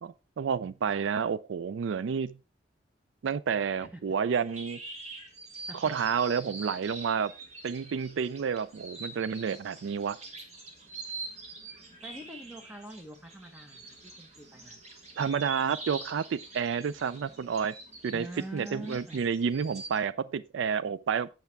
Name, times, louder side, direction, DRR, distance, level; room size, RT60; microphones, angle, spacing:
voice 1, 0.0-2.4 3.2-4.8 5.8-7.3 7.6-10.2 15.2-17.7 18.0-18.3 18.5-21.3, right 6 dB, 80° right, 0.4 m, -30 dB
sound 1, 4.3-20.0, right 3 dB, 35° right, 1.6 m, -45 dB
voice 2, 12.0-14.8 18.1-19.2, right 1 dB, 10° right, 1.1 m, -44 dB
8.1 x 7.2 x 3.4 m
head